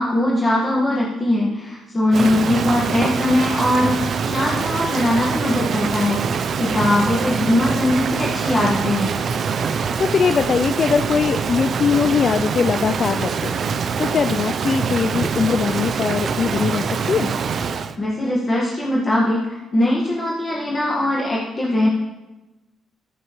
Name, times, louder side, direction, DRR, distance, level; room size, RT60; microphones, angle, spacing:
voice 1, 0.0-9.1 18.0-21.9, left 1 dB, 30° left, -4 dB, 1.6 m, -20 dB
Rain, 2.1-18.0, right 6 dB, 55° right, 0.5 m, -24 dB
voice 2, 10.0-13.5 14.0-17.4, left 6 dB, 50° left, 12 dB, 0.3 m, -21 dB
14.5 x 5.9 x 3.1 m, 1.0 s
cardioid pair, 90°, 0 cm